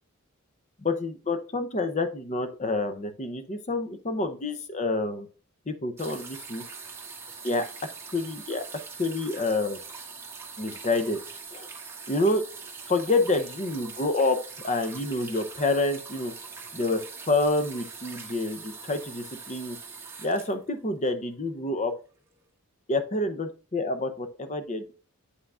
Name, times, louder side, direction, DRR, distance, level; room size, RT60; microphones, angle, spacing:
voice 1, 0.8-5.3 5.7-6.6 7.4-7.6 8.1-8.6 9.0-9.8 10.6-11.2 11.5-11.7 12.1-12.4 12.9-14.4 14.6-16.3 16.7-17.0 17.3-19.8 20.2-21.9 22.9-24.9, left 2 dB, 30° left, 9 dB, 0.7 m, -28 dB
sound 1, 6.0-21.3 22.3-22.4, right 5 dB, 10° right, 1.0 m, -42 dB
8.1 x 5.7 x 2.4 m, 0.36 s
head